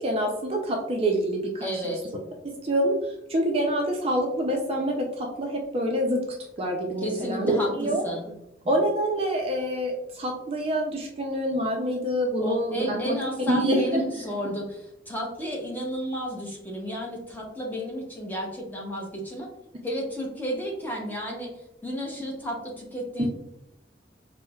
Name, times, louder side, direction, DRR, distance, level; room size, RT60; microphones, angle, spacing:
voice 1, 0.0-1.9 2.6-3.0 3.3-6.2 6.6-8.0 8.7-13.2 13.5-14.1 23.2-23.3, right 1 dB, 35° right, 1 dB, 0.4 m, -26 dB
voice 2, 1.6-2.0 7.0-8.3 12.4-19.5 19.8-23.3, equal, 10° left, -2 dB, 0.7 m, -32 dB
4.2 x 2.1 x 2.3 m, 0.81 s
head